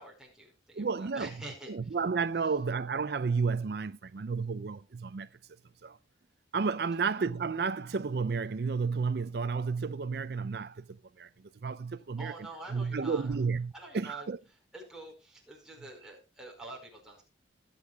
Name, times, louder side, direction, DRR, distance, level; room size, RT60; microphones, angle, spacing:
voice 1, 0.0-1.7 12.2-13.4 13.7-14.3 14.7-17.2, right 2 dB, 5° right, 4.8 m, -46 dB
voice 2, 0.7-1.3 1.7-5.3 5.8-6.0 6.5-10.8 11.2-11.3 11.6-12.3 12.7-14.4, right 5 dB, 55° right, 0.5 m, -31 dB
21.0 x 8.4 x 2.3 m
head